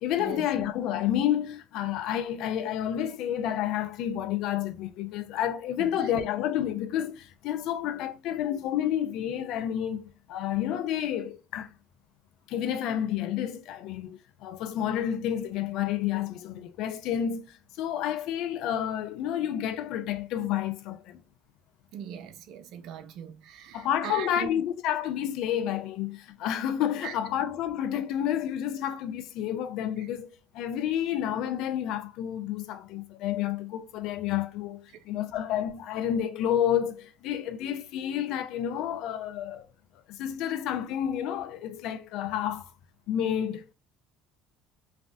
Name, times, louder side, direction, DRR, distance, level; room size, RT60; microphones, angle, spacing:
voice 1, 0.0-11.7 12.5-21.2 23.7-30.3 30.5-39.7 40.1-42.7 43.1-43.7, left 10 dB, 70° left, 0.4 m, -30 dB
voice 2, 5.8-6.1 21.9-24.6 27.0-27.1 30.0-30.1, right 8 dB, 65° right, 0.5 m, -40 dB
3.2 x 2.1 x 2.6 m
supercardioid pair, 75°, 0 cm